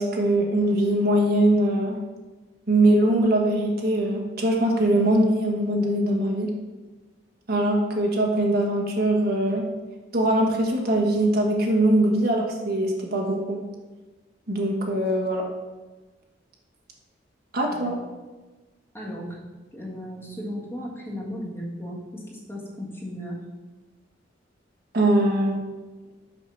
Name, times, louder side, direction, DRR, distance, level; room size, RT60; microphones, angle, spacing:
voice 1, 0.0-2.0 2.7-6.5 7.5-9.7 10.1-13.6 14.5-15.4 17.5-17.9 24.9-25.6, right 1 dB, 55° right, 0 dB, 1.3 m, -22 dB
voice 2, 18.9-19.4 19.7-23.4, equal, 15° left, -3 dB, 1.7 m, -35 dB
6.2 x 5.9 x 5.6 m, 1.2 s
head